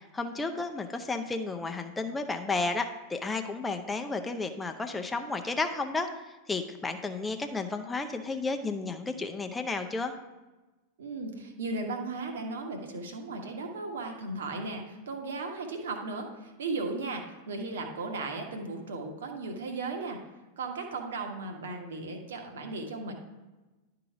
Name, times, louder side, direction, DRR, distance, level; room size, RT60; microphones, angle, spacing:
voice 1, 0.1-6.1 6.5-10.1, left 3 dB, 10° left, 5 dB, 0.6 m, -32 dB
voice 2, 11.0-20.2 20.6-23.1, right 3 dB, 65° right, 3 dB, 1.4 m, -36 dB
11.5 x 3.8 x 4.8 m, 1.1 s
figure-of-eight pair, 90°, 0 cm